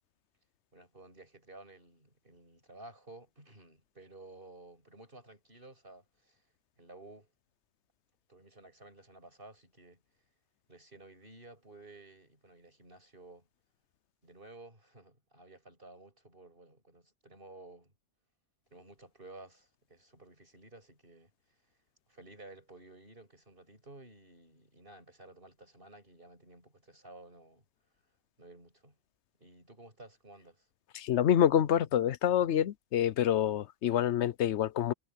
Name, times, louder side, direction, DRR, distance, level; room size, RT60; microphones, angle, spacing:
voice 1, 0.7-6.4 6.8-7.3 8.3-10.0 10.7-13.5 14.2-17.9 18.7-21.6 22.1-27.6 28.4-29.0 29.4-30.7, right 2 dB, 50° right, 8.3 m, -54 dB
voice 2, 30.9-34.9, left 10 dB, 75° left, 1.0 m, -27 dB
omnidirectional pair, 1.2 m